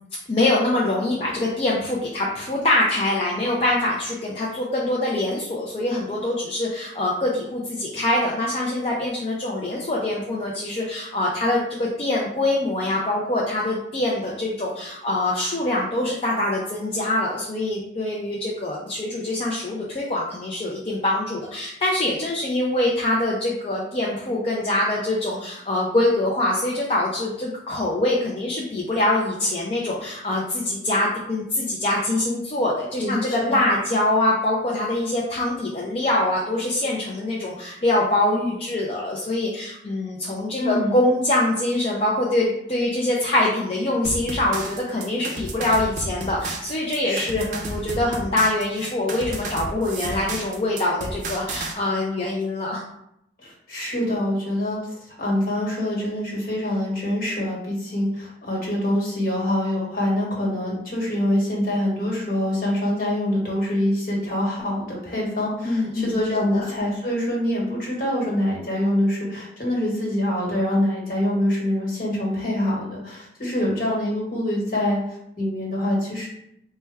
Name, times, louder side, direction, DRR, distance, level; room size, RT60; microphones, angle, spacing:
voice 1, 0.3-52.8 65.7-66.2 66.5-66.6, left 1 dB, 35° left, -4 dB, 0.4 m, -24 dB
voice 2, 33.0-33.6 40.6-41.0 47.0-47.7 53.4-54.8 55.2-75.0 75.4-76.3, left 1 dB, 50° left, -4 dB, 1.3 m, -25 dB
sound 1, 44.0-51.7, right 2 dB, 45° right, 0.5 m, -32 dB
4.2 x 2.2 x 3.4 m, 0.78 s
head